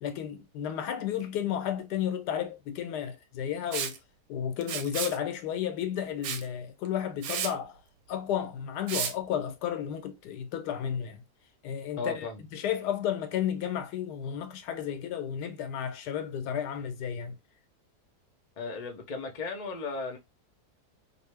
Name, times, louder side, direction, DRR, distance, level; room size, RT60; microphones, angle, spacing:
voice 1, 0.0-4.0 4.3-7.8 8.1-11.2 11.6-17.4, left 9 dB, 85° left, 1.2 m, -33 dB
Liquid, 3.7-4.0 4.6-5.2 6.2-6.5 6.9-7.0 7.2-7.5 8.9-9.1, right 8 dB, 70° right, 1.0 m, -32 dB
voice 2, 12.0-12.4 18.6-20.2, left 4 dB, 45° left, 0.5 m, -35 dB
2.6 x 2.6 x 3.2 m
omnidirectional pair, 1.7 m